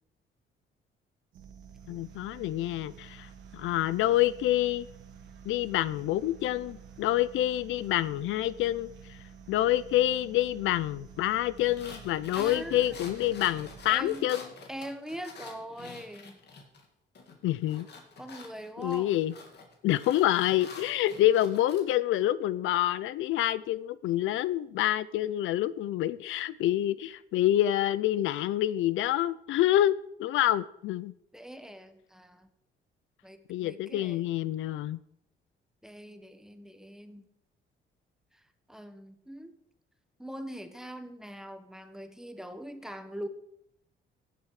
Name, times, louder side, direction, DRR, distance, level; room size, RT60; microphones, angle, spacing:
sound 1, 1.3-14.3, right 7 dB, 75° right, 1.7 m, -50 dB
voice 1, 1.9-4.9 5.5-8.9 9.5-14.5 17.4-17.9 18.8-19.3 19.8-31.1 33.5-35.0, left 13 dB, 80° left, 18 dB, 0.5 m, -27 dB
sound 2, 11.6-16.9 17.1-21.8, left 4 dB, 60° left, 2.6 m, -47 dB
voice 2, 12.3-13.1 13.9-14.3 14.7-16.4 18.2-19.2 31.3-32.5 33.2-34.3 35.8-37.3 38.3-39.5 40.2-43.3, equal, 5° right, 9 dB, 1.3 m, -42 dB
15.5 x 7.6 x 4.9 m, 0.75 s
cardioid pair, 90°, 20 cm